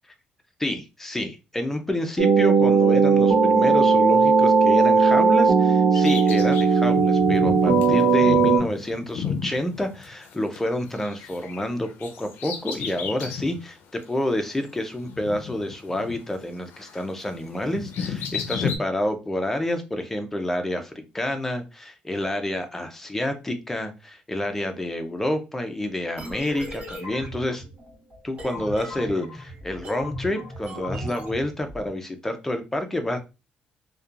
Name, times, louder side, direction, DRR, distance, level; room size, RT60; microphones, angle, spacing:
voice 1, 0.6-27.6 28.2-33.2, left 1 dB, 10° left, 6 dB, 0.5 m, -28 dB
sound 1, 2.2-8.6, right 4 dB, 80° right, 0.6 m, -17 dB
Bird vocalization bird call bird song, 5.9-10.6 10.8-13.6 14.0-14.1 15.0-16.5 16.7-18.8, left 6 dB, 80° left, 0.4 m, -33 dB
sound 2, 26.2-31.9, left 1 dB, 40° right, 1.4 m, -37 dB
2.8 x 2.2 x 2.4 m, 0.27 s
cardioid pair, 145°, 3 cm